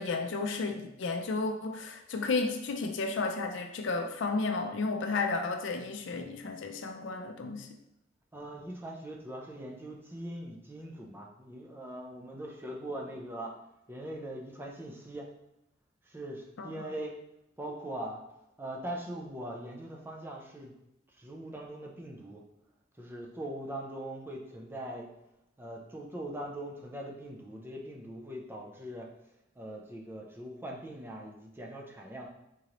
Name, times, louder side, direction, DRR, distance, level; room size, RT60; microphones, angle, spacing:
voice 1, 0.0-7.7 16.6-16.9, left 3 dB, 65° left, 5 dB, 0.4 m, -33 dB
voice 2, 8.3-13.5 13.9-15.3 16.0-17.2 17.6-18.2 18.6-20.7 21.1-22.4 23.0-25.1 25.6-29.1 29.6-32.3, right 1 dB, 10° right, -1 dB, 0.4 m, -41 dB
3.7 x 3.0 x 2.9 m, 0.87 s
head